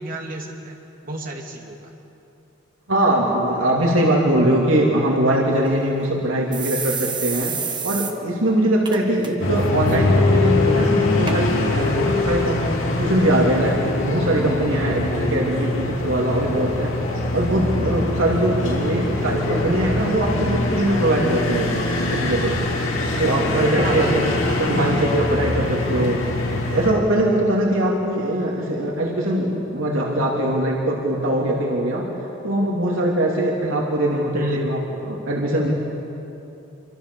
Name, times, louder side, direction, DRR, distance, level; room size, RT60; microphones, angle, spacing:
voice 1, 0.0-1.8 9.9-10.2 19.2-19.6 23.8-25.0 34.3-34.7, right 1 dB, 45° right, 0 dB, 2.8 m, -30 dB
voice 2, 2.9-7.6 7.8-16.9 17.3-21.8 22.1-22.6 23.2-24.3 24.6-26.3 26.5-32.1 32.4-35.7, right 1 dB, 85° right, -2 dB, 3.0 m, -21 dB
sound 1, 5.6-5.7 6.0-6.1 6.5-8.1 8.5-8.6 8.9-9.3 9.6-10.0 10.6-10.7 11.3-11.4 12.1-12.2, right 6 dB, 20° right, 1.6 m, -28 dB
sound 2, 9.4-26.9, left 2 dB, 80° left, 4.3 m, -23 dB
27.5 x 25.0 x 7.1 m, 2.9 s
head